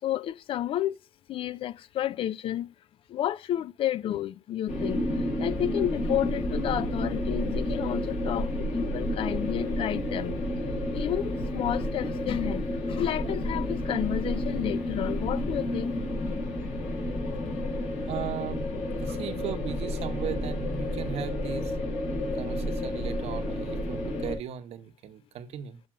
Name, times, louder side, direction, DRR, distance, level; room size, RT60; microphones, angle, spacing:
voice 1, 0.0-1.0 1.3-2.7 3.1-10.3 10.9-16.0 16.2-16.3 19.1-19.2, left 12 dB, 50° left, 0.4 m, -31 dB
sound 1, 4.7-24.3, left 1 dB, 80° left, 5.1 m, -30 dB
voice 2, 18.1-18.7 19.0-21.7 22.3-25.8, right 10 dB, 65° right, 0.9 m, -37 dB
7.7 x 5.5 x 4.9 m
cardioid pair, 150°, 11 cm